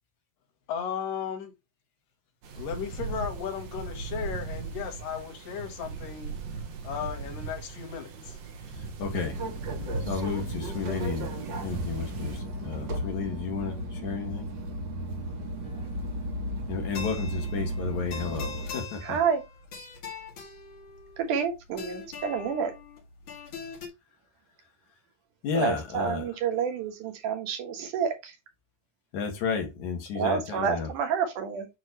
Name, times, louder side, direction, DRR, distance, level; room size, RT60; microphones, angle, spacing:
voice 1, 0.7-1.5 2.6-6.3 6.8-8.4, left 7 dB, 85° left, 3.2 m, -35 dB
sound 1, 2.4-12.4, right 5 dB, 90° right, 3.4 m, -38 dB
voice 2, 8.7-9.4 10.0-14.5 16.7-19.2 25.4-26.4 29.1-30.9, left 5 dB, 65° left, 3.0 m, -32 dB
sound 2, 9.1-18.7, right 1 dB, 50° right, 1.5 m, -34 dB
sound 3, 15.6-23.9, left 5 dB, 45° left, 2.1 m, -43 dB
voice 3, 19.0-19.4 21.2-22.7 25.5-28.4 30.2-31.7, right 7 dB, 70° right, 2.9 m, -29 dB
8.8 x 3.2 x 4.1 m
omnidirectional pair, 3.8 m